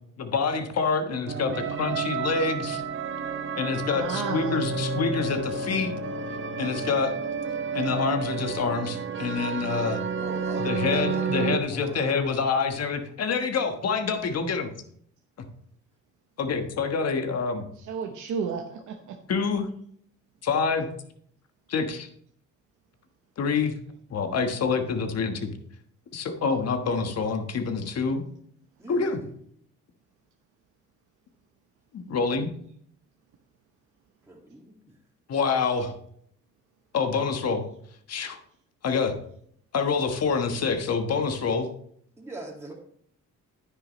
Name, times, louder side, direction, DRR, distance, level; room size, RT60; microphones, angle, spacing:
voice 1, 0.2-2.8 3.5-5.9 6.6-7.1 7.7-10.0 10.6-14.7 16.4-17.7 19.3-19.7 20.4-20.9 21.7-22.1 23.4-23.7 24.1-25.5 26.1-28.2 28.9-29.2 31.9-32.5 35.3-35.9 36.9-37.6 38.1-38.4 38.8-39.2 39.7-41.7, left 5 dB, 55° left, 6 dB, 1.4 m, -26 dB
sound 1, 1.3-11.6, right 5 dB, 40° right, 0.9 m, -30 dB
voice 2, 3.9-4.6 10.3-10.4 17.8-19.2, right 6 dB, 75° right, 4 dB, 1.0 m, -33 dB
voice 3, 10.2-12.1 28.8-29.3 34.6-34.9 42.2-42.7, right 2 dB, 10° right, -2 dB, 2.2 m, -40 dB
9.7 x 9.5 x 3.1 m, 0.66 s
cardioid pair, 90°, 30 cm